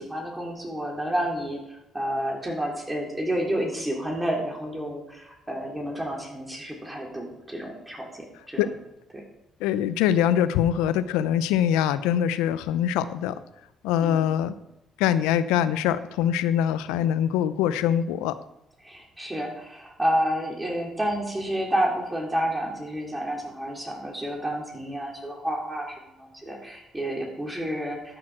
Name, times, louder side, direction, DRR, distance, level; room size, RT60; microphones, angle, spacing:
voice 1, 0.0-1.6 1.9-8.7 14.0-14.3 18.8-28.2, right 1 dB, 15° right, -1 dB, 3.3 m, -30 dB
voice 2, 9.6-13.4 13.8-14.5 15.0-18.3, left 10 dB, 90° left, 14 dB, 0.6 m, -23 dB
12.5 x 6.4 x 6.0 m, 0.90 s
supercardioid pair, 65°, 0 cm